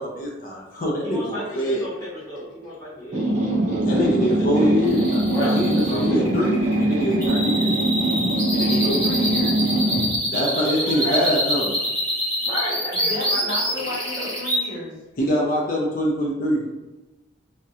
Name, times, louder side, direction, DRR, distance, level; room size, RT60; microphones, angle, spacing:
voice 1, 0.0-1.9 3.8-7.7 10.3-11.8 15.2-16.6, equal, 45° left, -2 dB, 0.4 m, -24 dB
voice 2, 1.0-4.8 5.3-6.3 7.2-7.5 8.5-9.2 10.8-11.4 12.4-14.4, equal, 15° left, -10 dB, 1.1 m, -31 dB
sound 1, 3.1-10.2, right 1 dB, 35° right, 0.5 m, -22 dB
sound 2, 4.8-14.6, equal, 20° right, 1.1 m, -26 dB
voice 3, 8.7-9.7 12.9-14.9, left 2 dB, 80° left, -5 dB, 0.7 m, -33 dB
2.3 x 2.1 x 2.7 m, 1.1 s
head